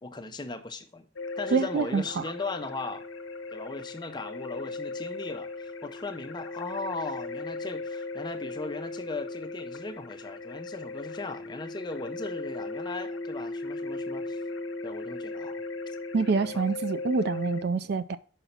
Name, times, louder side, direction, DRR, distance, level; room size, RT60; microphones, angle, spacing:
voice 1, 0.0-1.1 1.4-3.0 3.5-14.4 14.8-15.6 16.5-16.6, left 3 dB, 20° left, 0.6 m, -38 dB
sound 1, 1.2-17.6, left 3 dB, 75° left, 0.7 m, -37 dB
voice 2, 1.5-2.2 16.1-18.2, right 4 dB, 50° right, 0.4 m, -26 dB
5.5 x 5.0 x 5.7 m
head